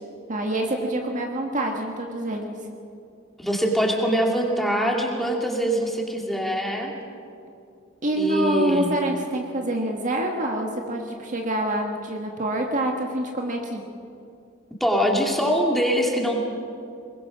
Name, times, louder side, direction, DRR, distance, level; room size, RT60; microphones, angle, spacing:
voice 1, 0.3-2.6 8.0-13.8, right 1 dB, 40° right, 2 dB, 1.6 m, -26 dB
voice 2, 3.4-6.9 8.1-8.9 14.8-16.4, equal, ahead, 0 dB, 2.5 m, -23 dB
21.5 x 21.0 x 6.1 m, 2.5 s
head